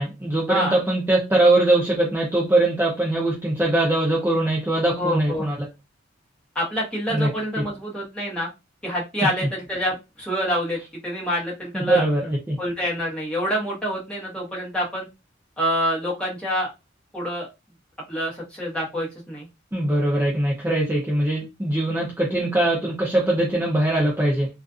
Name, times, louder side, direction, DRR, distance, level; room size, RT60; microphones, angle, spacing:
voice 1, 0.0-5.5 7.1-7.3 9.2-9.3 11.7-12.6 19.7-24.5, right 1 dB, 10° right, -4 dB, 0.5 m, -21 dB
voice 2, 5.0-5.5 6.5-8.5 8.8-12.0 12.6-15.1 15.6-16.7 17.1-17.5 18.1-19.5, equal, 5° left, -5 dB, 1.0 m, -27 dB
2.4 x 2.4 x 2.4 m, 0.25 s
head